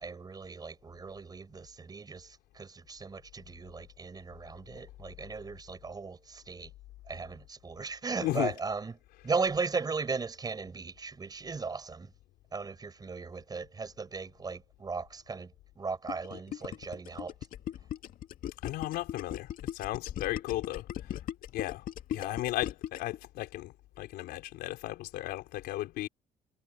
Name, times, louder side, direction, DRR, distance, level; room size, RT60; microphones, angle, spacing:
voice 1, 0.0-6.7 7.1-8.9 9.2-12.1 12.5-17.3 22.1-22.4, right 4 dB, 25° right, 4.7 m, -37 dB
voice 2, 8.2-8.5 9.3-9.4 18.6-20.9 21.5-21.8 22.1-26.1, left 16 dB, 80° left, 4.6 m, -35 dB
Gurgling, 16.1-23.2, left 11 dB, 60° left, 2.3 m, -38 dB
cardioid pair, 110°, 16 cm